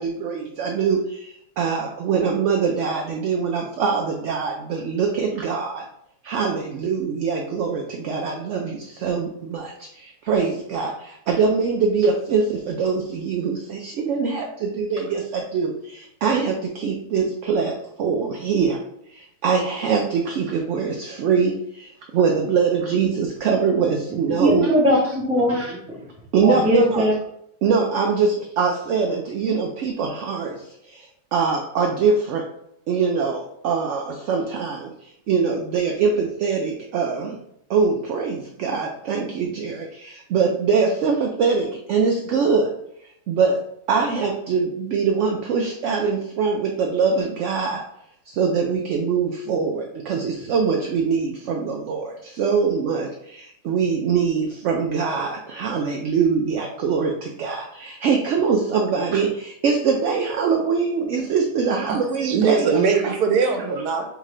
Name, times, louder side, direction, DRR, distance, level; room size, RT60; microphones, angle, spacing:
voice 1, 0.0-5.8 6.2-18.8 19.1-24.7 25.5-25.7 26.3-27.1 27.6-32.5 32.9-37.4 37.7-42.7 43.3-47.8 48.3-63.1, right 5 dB, 70° right, 1 dB, 0.7 m, -23 dB
voice 2, 24.4-26.1 26.4-27.1, equal, 5° right, -2 dB, 0.6 m, -20 dB
voice 3, 61.9-64.0, right 5 dB, 90° right, 4 dB, 1.3 m, -21 dB
3.7 x 3.6 x 3.3 m, 0.74 s
omnidirectional pair, 1.7 m